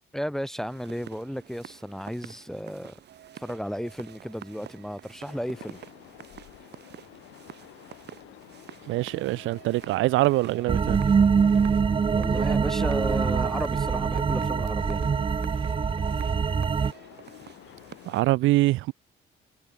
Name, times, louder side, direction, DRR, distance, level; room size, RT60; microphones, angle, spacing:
voice 1, 0.1-2.9 3.3-5.8 12.1-15.0, equal, ahead, 0.8 m, -34 dB
sound 1, 0.6-18.2, right 10 dB, 60° right, 1.1 m, -48 dB
sound 2, 5.3-18.3, left 16 dB, 85° left, 1.1 m, -49 dB
voice 2, 8.9-11.0 18.1-18.9, right 18 dB, 85° right, 0.5 m, -24 dB
sound 3, 10.7-16.9, right 6 dB, 25° right, 0.5 m, -24 dB
cardioid pair, 90°, 20 cm